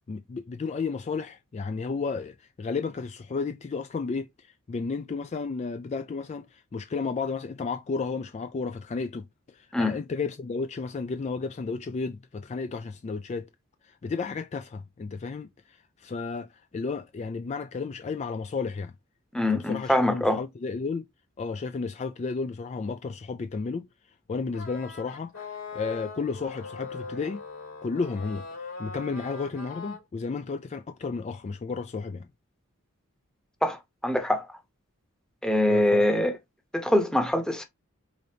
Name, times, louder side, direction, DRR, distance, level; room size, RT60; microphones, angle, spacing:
voice 1, 0.1-13.5 13.8-18.9 19.5-21.0 21.4-23.9 24.3-27.4 27.8-32.3 35.7-36.1, left 4 dB, 30° left, 0.3 m, -33 dB
voice 2, 19.3-20.4 33.6-34.5 35.4-36.3 36.7-37.6, left 1 dB, 5° left, 0.9 m, -24 dB
sound 1, 24.5-30.0, left 4 dB, 85° left, 3.2 m, -41 dB
5.1 x 3.8 x 2.7 m
head